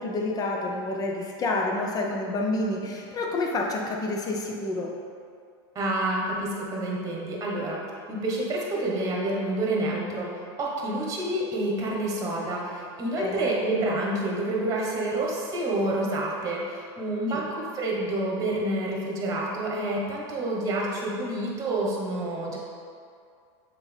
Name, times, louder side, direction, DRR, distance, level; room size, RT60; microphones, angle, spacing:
voice 1, 0.0-4.9 13.2-13.5 17.3-17.4, left 2 dB, 25° left, 0 dB, 0.9 m, -29 dB
voice 2, 5.7-7.8 8.1-22.6, right 1 dB, 25° right, -3 dB, 1.4 m, -28 dB
6.8 x 4.2 x 3.5 m, 2.3 s
supercardioid pair, 125°, 15 cm